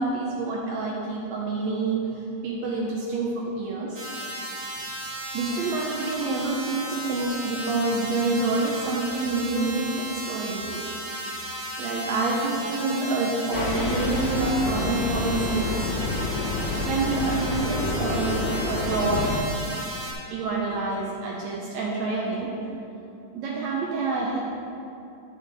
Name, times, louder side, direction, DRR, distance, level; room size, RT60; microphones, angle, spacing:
voice 1, 0.0-4.0 4.7-4.8 5.3-10.8 11.8-15.9 16.9-19.2 20.3-22.5 23.3-24.4, right 3 dB, 70° right, -3 dB, 1.9 m, -27 dB
sound 1, 3.9-20.1, right 1 dB, 50° right, 2.1 m, -35 dB
sound 2, 13.5-19.4, left 3 dB, 75° left, 2.1 m, -28 dB
10.5 x 5.7 x 3.4 m, 2.7 s
omnidirectional pair, 3.4 m